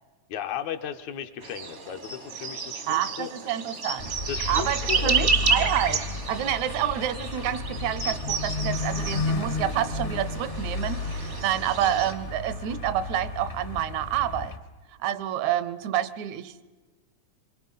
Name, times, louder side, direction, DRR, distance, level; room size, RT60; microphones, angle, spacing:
voice 1, 0.3-3.3 4.3-5.3, left 9 dB, 75° left, 7 dB, 2.4 m, -35 dB
sound 1, 1.4-12.1, right 5 dB, 50° right, 0.9 m, -31 dB
voice 2, 2.9-4.1 4.5-14.5 15.0-16.7, right 11 dB, 75° right, 15 dB, 2.1 m, -28 dB
sound 2, 4.0-14.6, left 3 dB, 50° left, 0.8 m, -32 dB
26.5 x 23.5 x 5.5 m, 1.3 s
omnidirectional pair, 3.4 m